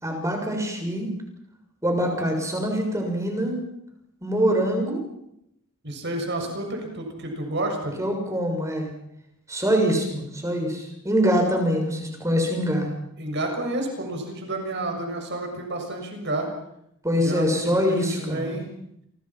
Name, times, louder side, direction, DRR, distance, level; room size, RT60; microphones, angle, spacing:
voice 1, 0.0-1.1 1.8-3.6 4.2-5.0 8.0-8.9 9.5-12.9 17.0-18.5, equal, 15° right, 2 dB, 6.6 m, -24 dB
voice 2, 5.8-8.0 13.2-16.5 17.2-18.7, right 1 dB, 50° right, 3 dB, 6.8 m, -30 dB
29.0 x 24.0 x 6.0 m, 0.78 s
head